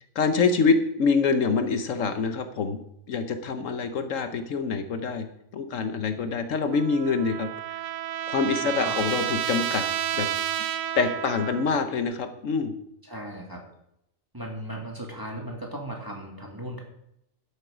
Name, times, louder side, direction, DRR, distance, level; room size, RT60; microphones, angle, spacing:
voice 1, 0.1-2.8 3.1-5.3 5.5-7.9 8.3-9.8 10.1-10.3 11.0-12.7, left 4 dB, 70° left, 8 dB, 1.2 m, -25 dB
Trumpet, 6.7-11.9, right 11 dB, 85° right, 1.1 m, -30 dB
voice 2, 8.8-9.1 13.0-13.6 14.3-16.8, right 1 dB, 15° right, 0 dB, 1.9 m, -37 dB
11.5 x 8.1 x 5.0 m, 0.79 s
omnidirectional pair, 1.4 m